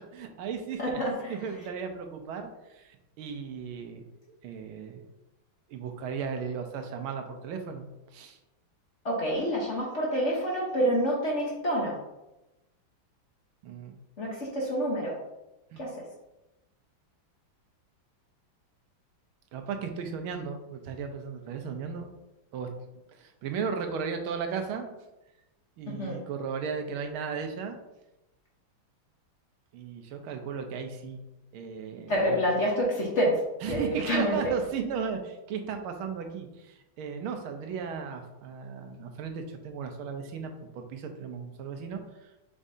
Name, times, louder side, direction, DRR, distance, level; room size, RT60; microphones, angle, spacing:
voice 1, 0.1-5.0 5.7-7.9 8.1-8.4 13.6-14.0 15.7-15.8 19.5-22.1 22.5-22.7 23.1-25.0 25.8-27.8 29.7-31.2 31.5-32.4 33.6-42.3, right 6 dB, 85° right, 5 dB, 1.6 m, -36 dB
voice 2, 0.8-1.4 9.0-12.0 14.2-15.2 15.8-16.0 25.9-26.2 32.1-33.4 33.7-34.4, equal, 40° left, -3 dB, 1.1 m, -27 dB
7.1 x 5.2 x 2.7 m, 0.96 s
omnidirectional pair, 2.3 m